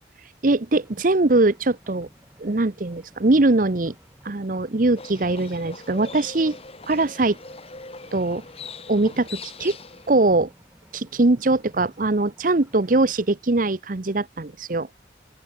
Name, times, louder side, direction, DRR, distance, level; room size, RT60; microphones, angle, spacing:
voice 1, 0.4-2.1 2.4-3.9 4.2-6.6 6.9-7.4 8.1-8.4 8.9-9.8 10.1-10.5 10.9-14.9, right 2 dB, 50° right, 0.9 m, -21 dB
sound 1, 0.8-13.3, equal, 10° right, 7.8 m, -56 dB
Livestock farm animals working animals, 5.0-10.3, left 4 dB, 35° left, 6.4 m, -41 dB
open air
head